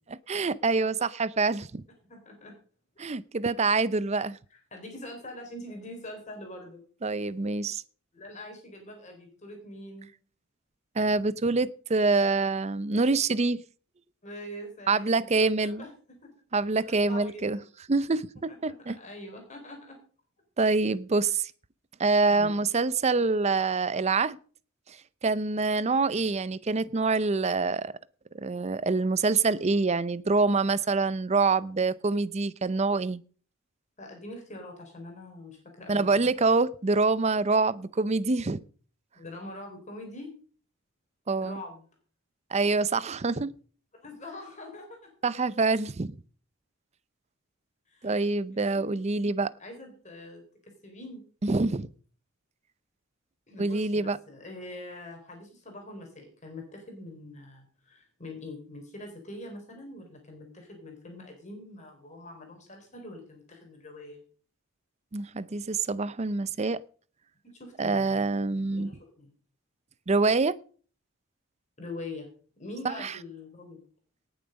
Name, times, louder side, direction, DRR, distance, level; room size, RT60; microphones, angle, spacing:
voice 1, 0.1-1.8 3.0-4.4 7.0-7.8 11.0-13.6 14.9-15.9 16.5-17.6 17.9-19.0 20.6-21.5 22.0-24.4 25.2-27.9 28.3-33.2 35.9-38.6 41.3-41.6 42.5-43.5 45.2-46.2 48.0-49.5 51.4-51.9 53.6-54.2 65.1-66.8 67.8-69.0 70.1-70.6 72.8-73.1, right 3 dB, 30° right, 0.5 m, -26 dB
voice 2, 2.1-2.6 4.5-6.8 8.1-10.1 14.2-15.9 16.2-16.3 16.8-17.6 19.0-20.0 22.3-22.6 34.0-36.3 39.1-40.3 41.4-41.8 43.9-45.1 47.9-48.2 48.5-49.3 49.6-50.4 50.8-51.2 53.5-64.2 67.5-68.3 68.7-69.3 71.8-72.3 72.6-73.8, left 1 dB, 35° left, 4.0 m, -44 dB
18.5 x 7.1 x 5.2 m
head